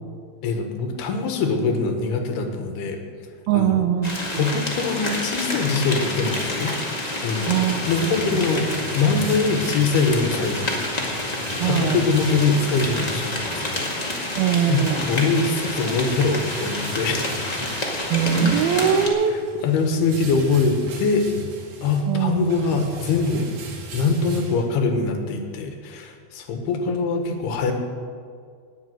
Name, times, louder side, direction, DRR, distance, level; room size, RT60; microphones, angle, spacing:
voice 1, 0.4-3.0 3.5-3.8 4.3-6.7 7.1-7.6 7.8-8.7 8.9-10.8 11.6-13.9 14.7-17.2 19.6-21.3 21.8-23.5 23.9-27.7, left 4 dB, 85° left, 4 dB, 3.4 m, -23 dB
voice 2, 3.5-4.6 7.5-7.9 8.2-8.4 11.6-12.1 14.4-15.1 18.1-19.3 22.1-22.7, right 8 dB, 80° right, 8 dB, 2.7 m, -22 dB
sound 1, 4.0-19.1, left 1 dB, 40° left, 0.5 m, -28 dB
sound 2, 7.5-25.1, right 1 dB, 55° right, 3.0 m, -39 dB
19.0 x 7.3 x 7.7 m, 2.1 s
omnidirectional pair, 4.5 m